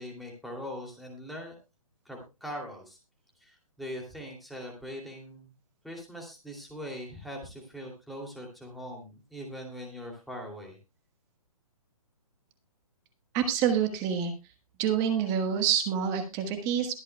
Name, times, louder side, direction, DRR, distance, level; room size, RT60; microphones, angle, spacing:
voice 1, 0.0-1.5 2.0-3.0 3.4-5.5 5.8-10.8, equal, ahead, -1 dB, 2.7 m, -41 dB
voice 2, 13.3-14.3 14.8-16.9, right 8 dB, 20° right, 7 dB, 1.4 m, -27 dB
22.5 x 8.1 x 2.2 m, 0.27 s
hypercardioid pair, 160°, 19 cm